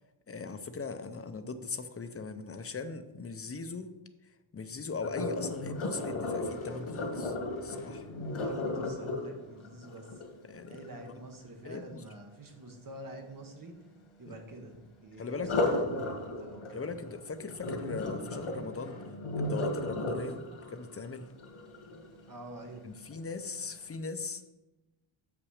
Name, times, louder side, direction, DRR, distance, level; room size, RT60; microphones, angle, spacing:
voice 1, 0.3-3.9 4.5-7.3 7.6-8.1 10.5-10.8 11.6-12.0 14.3-14.4 15.2-15.5 16.7-19.0 19.4-20.4 20.7-21.3 22.8-24.5, left 4 dB, 30° left, 8 dB, 0.6 m, -39 dB
Sink (filling or washing), 5.0-11.0 15.3-22.4 22.9-23.2 23.7-23.8, left 2 dB, 85° left, 1.7 m, -35 dB
voice 2, 8.2-10.2 10.7-13.7 14.2-16.8 22.3-22.8, right 1 dB, 45° right, 3 dB, 1.3 m, -47 dB
6.9 x 6.0 x 6.4 m, 1.0 s
wide cardioid pair, 160°, 48 cm